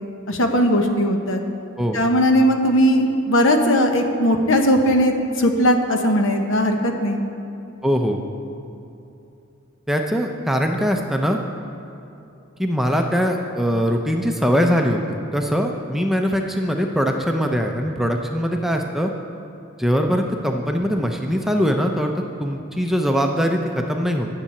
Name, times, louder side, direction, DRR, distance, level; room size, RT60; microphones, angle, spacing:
voice 1, 0.3-1.4 1.9-7.2, equal, 70° left, 4 dB, 1.0 m, -18 dB
voice 2, 7.8-8.2 9.9-11.4 12.6-19.1 19.8-24.3, equal, ahead, 2 dB, 0.5 m, -21 dB
10.5 x 6.8 x 8.4 m, 2.8 s
head